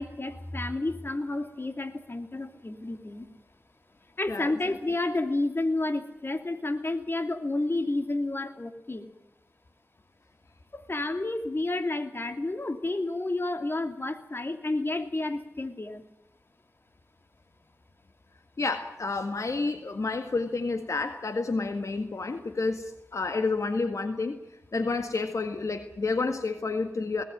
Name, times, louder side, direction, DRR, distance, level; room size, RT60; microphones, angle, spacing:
voice 1, 0.0-3.3 4.2-9.1 10.7-16.0, left 2 dB, 45° left, 6 dB, 2.8 m, -30 dB
voice 2, 4.3-4.8 18.6-24.4 24.7-27.2, left 3 dB, 75° left, 7 dB, 1.8 m, -30 dB
21.0 x 18.5 x 9.2 m, 0.85 s
wide cardioid pair, 55°, 5 cm